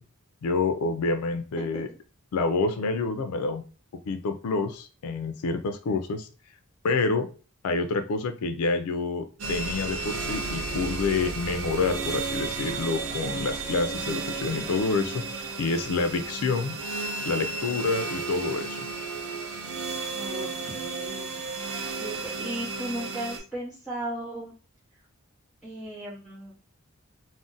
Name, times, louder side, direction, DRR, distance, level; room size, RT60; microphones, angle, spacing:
voice 1, 0.4-1.9 2.3-3.6 4.1-6.3 6.8-7.3 7.6-16.8 17.2-18.8, left 3 dB, 85° left, 8 dB, 0.4 m, -28 dB
sound 1, 9.4-23.4, right 3 dB, 70° right, 0.6 m, -33 dB
voice 2, 20.1-21.7 21.9-24.5 25.6-26.5, right 1 dB, ahead, -10 dB, 0.8 m, -36 dB
2.4 x 2.0 x 3.8 m, 0.37 s
head